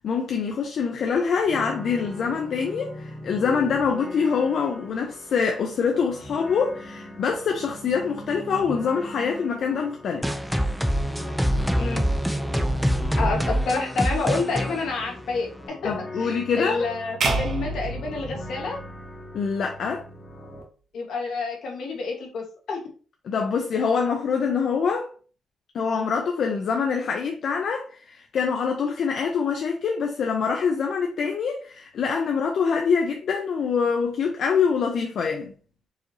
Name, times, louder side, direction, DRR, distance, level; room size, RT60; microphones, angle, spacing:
voice 1, 0.0-10.3 15.8-16.9 19.3-20.0 23.2-25.1 25.7-35.5, left 6 dB, 55° left, 0.5 m, -25 dB
sound 1, 1.4-20.6, left 1 dB, 25° left, 1.0 m, -40 dB
sound 2, 10.2-15.7, equal, ahead, 0.4 m, -25 dB
voice 2, 13.2-18.8 20.9-22.8, left 3 dB, 70° left, 1.3 m, -29 dB
sound 3, 17.2-19.5, right 3 dB, 60° right, 0.9 m, -29 dB
4.7 x 3.0 x 2.7 m
wide cardioid pair, 175°, 0 cm